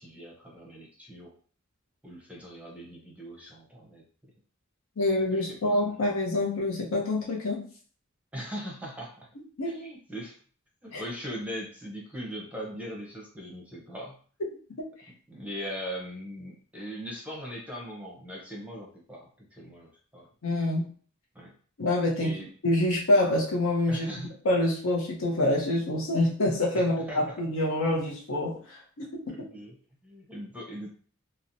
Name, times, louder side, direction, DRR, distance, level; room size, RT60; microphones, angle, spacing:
voice 1, 0.0-1.4 2.0-4.3 5.3-6.0 8.3-9.3 9.7-10.4 10.8-14.2 15.3-20.3 21.3-21.5 22.2-22.5 23.9-24.3 26.7-27.4 29.3-29.8 30.0-30.9, equal, 5° right, -2 dB, 0.6 m, -40 dB
voice 2, 5.0-7.6 9.6-9.8 10.9-11.0 20.4-20.9 21.8-22.3 22.6-24.1 24.4-29.4, left 1 dB, 75° left, -2 dB, 0.7 m, -26 dB
2.8 x 2.0 x 2.6 m, 0.43 s
head